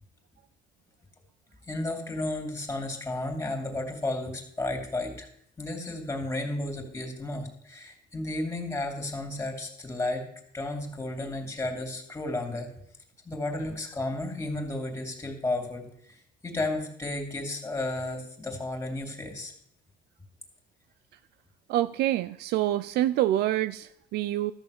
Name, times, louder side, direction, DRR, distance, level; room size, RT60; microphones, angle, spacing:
voice 1, 1.7-5.3 5.6-10.2 10.5-12.7 13.2-19.5, left 2 dB, 15° left, 3 dB, 2.7 m, -33 dB
voice 2, 21.7-24.5, right 13 dB, 75° right, 14 dB, 0.5 m, -26 dB
13.0 x 6.7 x 6.7 m, 0.68 s
cardioid pair, 110°, 17 cm